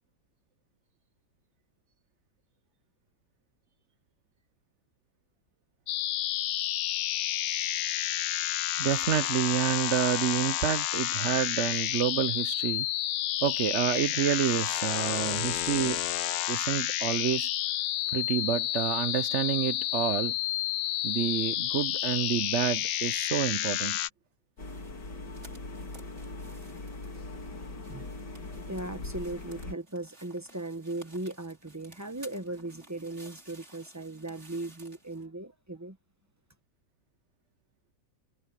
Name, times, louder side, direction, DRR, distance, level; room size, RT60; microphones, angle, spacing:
sound 1, 5.9-24.1, left 14 dB, 85° left, 1.4 m, -30 dB
voice 1, 8.8-12.9 13.4-16.0 16.5-17.5 18.1-20.3 21.0-24.0, right 9 dB, 70° right, 0.6 m, -29 dB
sound 2, 24.6-29.7, left 2 dB, 70° left, 3.6 m, -41 dB
sound 3, 24.6-35.3, right 2 dB, 35° right, 5.2 m, -56 dB
voice 2, 28.7-36.0, right 2 dB, 20° right, 0.5 m, -38 dB
omnidirectional pair, 2.0 m